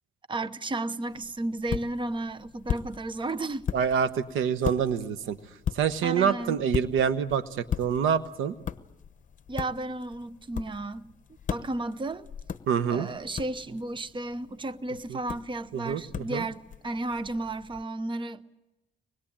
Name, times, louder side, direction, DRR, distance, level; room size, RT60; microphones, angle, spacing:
voice 1, 0.3-3.7 6.0-6.6 9.5-11.1 11.5-12.3 12.9-18.5, right 2 dB, 25° right, 0.9 m, -33 dB
sound 1, 1.1-17.8, left 8 dB, 40° left, 1.0 m, -39 dB
voice 2, 3.7-5.4 5.7-8.5 12.7-13.1 15.1-15.2 15.7-16.4, right 7 dB, 85° right, 1.1 m, -26 dB
24.5 x 21.0 x 8.8 m
cardioid pair, 90°, 20 cm